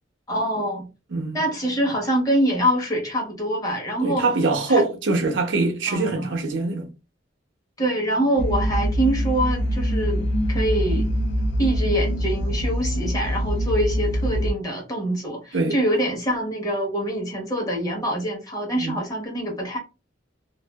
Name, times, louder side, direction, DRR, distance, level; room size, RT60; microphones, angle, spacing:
voice 1, 0.3-0.9 1.3-4.3 4.7-4.8 5.9-6.3 7.8-11.1 11.6-19.8, right 1 dB, 20° left, 1.0 m, -25 dB
voice 2, 4.0-6.9 15.5-15.8 18.8-19.0, right 3 dB, 70° right, 0.7 m, -23 dB
sound 1, 8.4-14.5, equal, 65° left, 0.4 m, -24 dB
2.6 x 2.3 x 2.2 m
head